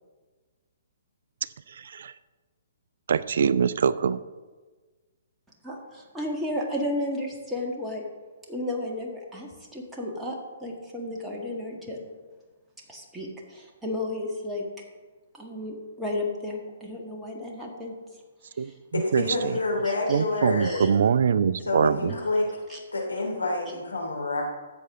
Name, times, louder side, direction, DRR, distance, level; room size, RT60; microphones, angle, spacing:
voice 1, 1.7-2.1 3.1-4.2 18.6-19.2 20.1-22.1, right 7 dB, 55° right, 15 dB, 0.4 m, -24 dB
voice 2, 5.6-8.0 8.5-12.0 12.9-14.6 15.3-18.2 18.5-18.8 19.8-20.2 20.6-20.9 22.1-22.2 22.7-22.8, left 1 dB, 5° right, -2 dB, 1.9 m, -33 dB
voice 3, 18.9-21.0 21.6-22.4 22.9-24.4, left 2 dB, 80° left, 0 dB, 2.9 m, -28 dB
13.0 x 7.9 x 3.8 m, 1.3 s
figure-of-eight pair, 125°, 0 cm